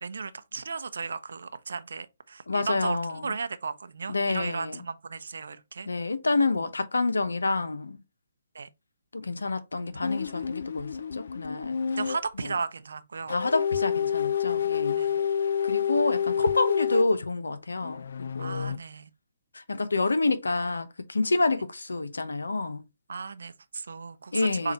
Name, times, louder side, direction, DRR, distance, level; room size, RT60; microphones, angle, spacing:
voice 1, 0.0-5.9 8.5-8.7 9.8-10.0 10.3-10.5 12.0-13.4 15.0-15.2 18.4-19.1 23.1-24.7, right 5 dB, 75° right, 0.6 m, -35 dB
voice 2, 2.5-3.3 4.1-4.8 5.9-8.0 9.1-11.8 12.4-12.5 13.3-15.0 15.6-18.7 19.5-22.8 24.3-24.7, left 3 dB, 85° left, 0.8 m, -28 dB
sound 1, 10.0-12.2 13.3-17.1 17.8-18.8, left 8 dB, 65° left, 0.4 m, -28 dB
7.2 x 2.5 x 3.0 m
hypercardioid pair, 140°, 0 cm